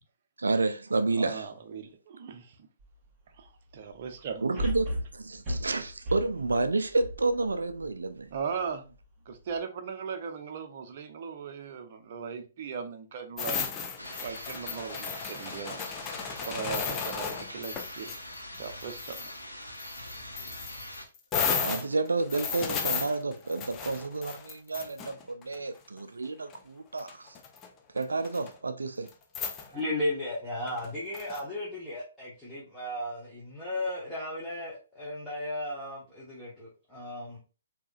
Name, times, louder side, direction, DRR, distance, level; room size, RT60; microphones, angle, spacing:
voice 1, 0.4-1.5 4.4-8.3 21.6-27.4 27.9-29.1, right 3 dB, 70° right, 0.3 m, -30 dB
voice 2, 1.2-2.7 3.3-4.4 8.3-8.9 9.3-13.6 14.2-15.8 16.2-18.1 18.6-19.3, right 6 dB, 40° right, 0.7 m, -38 dB
sound 1, 2.8-2.9 4.6-7.9 8.4-8.5, equal, 20° right, 2.2 m, -35 dB
sound 2, 13.4-18.2 18.5-19.3 19.8-25.6 26.5-26.6 27.0-27.7 28.0-28.5 29.1-29.2 29.3-29.7 30.7-31.4, left 6 dB, 20° left, 0.5 m, -34 dB
sound 3, 14.0-21.1, left 1 dB, 90° left, 0.9 m, -43 dB
voice 3, 29.7-37.4, left 1 dB, 5° left, 1.0 m, -35 dB
4.7 x 2.9 x 2.3 m
figure-of-eight pair, 125°, 0 cm